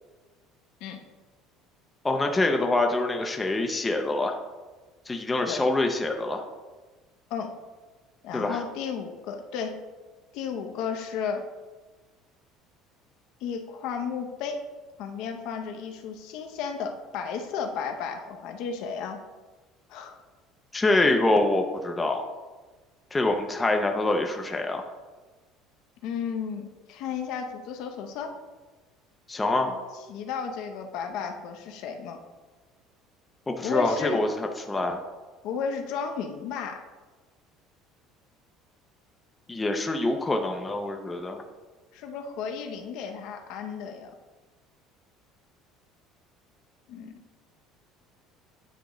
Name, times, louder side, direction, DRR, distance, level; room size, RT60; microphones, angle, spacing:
voice 1, 2.0-4.4 5.1-6.4 8.3-8.6 20.7-22.2 23.1-24.8 29.3-29.7 33.5-35.0 39.5-41.4, left 2 dB, 10° left, 4 dB, 0.4 m, -25 dB
voice 2, 8.2-9.8 10.3-11.4 13.4-14.6 15.0-19.2 19.9-20.2 26.0-28.3 29.7-29.8 30.1-32.2 33.6-34.2 35.4-36.8 41.9-44.2 46.9-47.1, left 6 dB, 65° left, 5 dB, 0.7 m, -33 dB
9.1 x 3.7 x 3.0 m, 1.3 s
cardioid pair, 155°, 0 cm